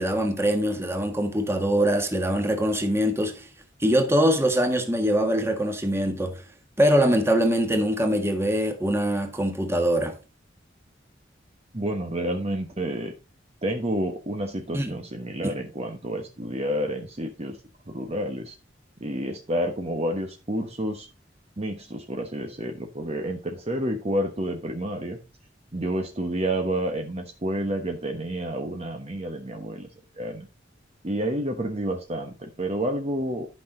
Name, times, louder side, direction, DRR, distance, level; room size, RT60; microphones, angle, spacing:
voice 1, 0.0-3.4 3.8-6.4 6.8-10.1 14.7-14.9 15.4-15.6, equal, 15° right, 1.7 m, -23 dB
voice 2, 11.7-13.1 13.6-17.6 17.9-18.5 19.0-21.1 21.6-25.2 25.7-29.9 30.2-30.5 31.0-33.5, right 1 dB, 35° right, 1.1 m, -29 dB
11.5 x 5.9 x 3.9 m
head